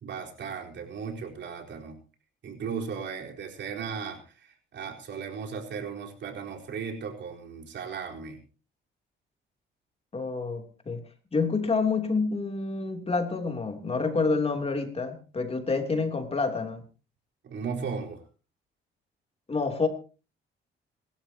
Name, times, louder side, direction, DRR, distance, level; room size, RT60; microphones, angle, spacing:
voice 1, 0.0-2.0 2.4-8.4 17.4-18.2, right 6 dB, 65° right, 1 dB, 4.3 m, -36 dB
voice 2, 10.1-11.0 11.3-16.8 19.5-19.9, left 4 dB, 30° left, 4 dB, 3.1 m, -28 dB
26.5 x 12.5 x 2.9 m, 0.35 s
cardioid pair, 90°, 20 cm